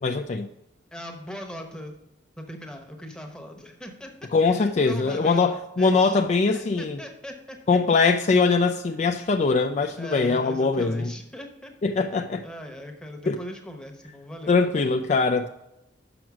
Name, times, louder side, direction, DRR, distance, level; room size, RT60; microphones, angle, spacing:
voice 1, 0.0-0.5 4.3-7.0 7.7-11.1 11.8-12.4 13.3-13.4 14.5-15.5, left 4 dB, 40° left, 0.3 m, -22 dB
voice 2, 0.9-1.9 2.4-4.1 4.4-6.2 6.5-7.6 10.0-11.7 12.4-14.7, equal, 5° left, 0.9 m, -40 dB
6.1 x 6.0 x 6.1 m
head